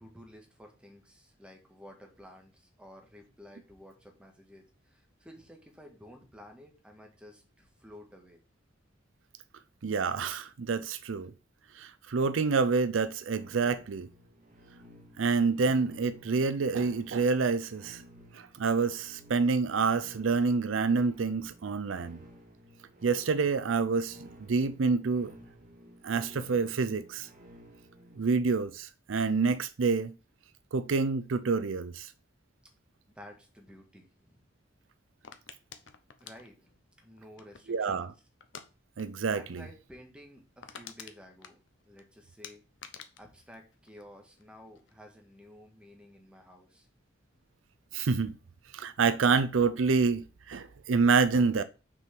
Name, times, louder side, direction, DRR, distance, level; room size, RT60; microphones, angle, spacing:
voice 1, 0.0-8.4 33.0-34.4 36.2-38.1 39.3-41.6 41.8-42.6 43.2-46.9, equal, 5° right, 1.7 m, -53 dB
voice 2, 9.8-11.3 11.8-14.1 15.2-18.0 18.3-22.2 23.0-25.3 26.0-27.3 28.2-30.1 30.7-32.1 37.7-38.1 39.0-39.6 47.9-48.3 48.7-51.6, right 4 dB, 80° right, 0.5 m, -27 dB
sound 1, 13.3-28.2, equal, 45° right, 1.8 m, -54 dB
sound 2, 35.2-37.8 38.4-38.7 39.0-39.2 39.5-39.6 40.0-40.1 40.3-42.0 42.4-44.5 44.8-45.2, left 7 dB, 70° left, 0.9 m, -48 dB
6.2 x 4.7 x 5.9 m
head